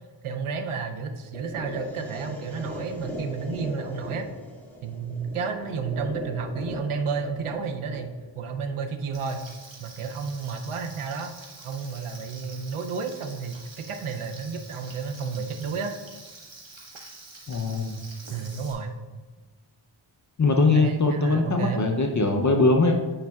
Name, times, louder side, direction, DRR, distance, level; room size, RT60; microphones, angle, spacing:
voice 1, 0.2-4.3 4.8-9.4 9.8-11.3 11.6-15.9 18.3-18.9 20.6-21.8, right 5 dB, 80° right, 5 dB, 0.7 m, -31 dB
sound 1, 1.3-9.3, equal, 5° left, 2.0 m, -39 dB
Frying (food), 9.1-18.7, right 3 dB, 65° right, 1.6 m, -46 dB
voice 2, 17.5-17.9 20.4-22.9, left 3 dB, 35° left, 3 dB, 0.6 m, -21 dB
8.8 x 5.3 x 2.3 m, 1.3 s
wide cardioid pair, 65°, 49 cm